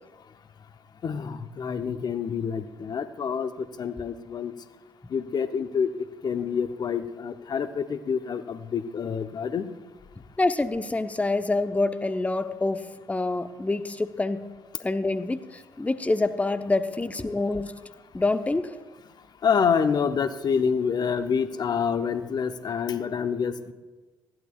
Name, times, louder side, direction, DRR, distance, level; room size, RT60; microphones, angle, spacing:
voice 1, 1.0-4.5 5.1-5.9 6.2-9.7 19.4-23.7, left 6 dB, 45° left, 9 dB, 0.9 m, -27 dB
voice 2, 10.4-14.4 14.8-17.7 18.1-18.7, left 2 dB, 15° left, 9 dB, 0.8 m, -26 dB
19.5 x 15.0 x 2.4 m, 1.3 s
figure-of-eight pair, 45°, 10 cm